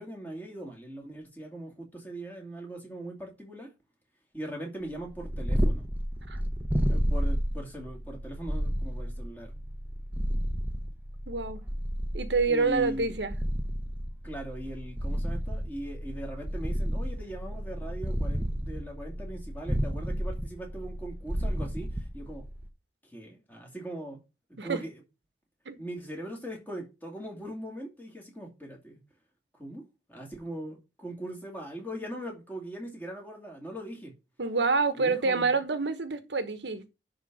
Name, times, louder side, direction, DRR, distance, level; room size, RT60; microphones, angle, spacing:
voice 1, 0.0-3.7 4.3-5.9 6.9-9.6 12.5-13.1 14.2-22.5 23.0-24.2 24.5-25.0 25.8-29.0 29.5-29.8 30.1-34.1 35.0-35.6, right 1 dB, 10° left, 2.6 m, -40 dB
Purr, 5.0-22.7, equal, 10° right, 1.0 m, -31 dB
voice 2, 11.3-11.6 12.1-13.3 24.6-24.8 25.7-25.8 34.4-36.9, right 4 dB, 85° right, 1.2 m, -27 dB
10.5 x 3.9 x 6.1 m
head